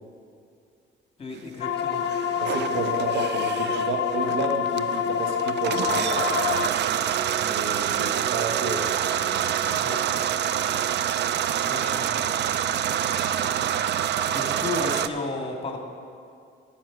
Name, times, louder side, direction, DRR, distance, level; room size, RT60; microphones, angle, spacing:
voice 1, 1.2-2.0 9.8-10.0 11.7-12.3 14.3-15.8, left 2 dB, 30° left, 2 dB, 1.9 m, -33 dB
sound 1, 1.6-6.7, left 8 dB, 70° left, 0.6 m, -27 dB
sound 2, 2.0-15.1, right 10 dB, 60° right, 0.4 m, -26 dB
voice 2, 2.4-6.3 7.3-8.9, right 3 dB, 85° right, 4 dB, 1.2 m, -31 dB
12.5 x 7.3 x 6.1 m, 2.4 s
cardioid pair, 90°, 20 cm